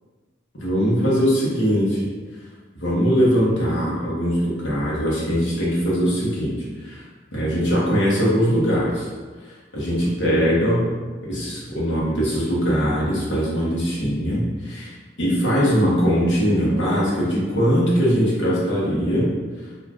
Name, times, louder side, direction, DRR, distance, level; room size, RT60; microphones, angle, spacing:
voice 1, 0.6-2.0 2.8-6.5 6.8-7.0 7.3-9.1 9.7-10.9 11.2-14.9 15.2-19.3, equal, 70° left, -7 dB, 0.9 m, -21 dB
2.4 x 2.4 x 3.3 m, 1.4 s
head